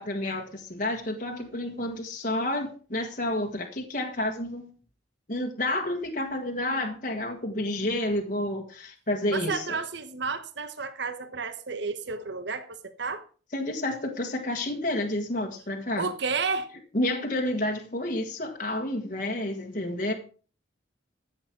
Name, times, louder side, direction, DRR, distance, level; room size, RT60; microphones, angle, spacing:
voice 1, 0.0-4.7 5.3-9.8 13.5-16.1 16.9-20.1, left 1 dB, 40° left, 1.6 m, -30 dB
voice 2, 9.3-13.2 16.0-16.7, right 4 dB, 60° right, 1.1 m, -31 dB
13.5 x 7.7 x 5.9 m
head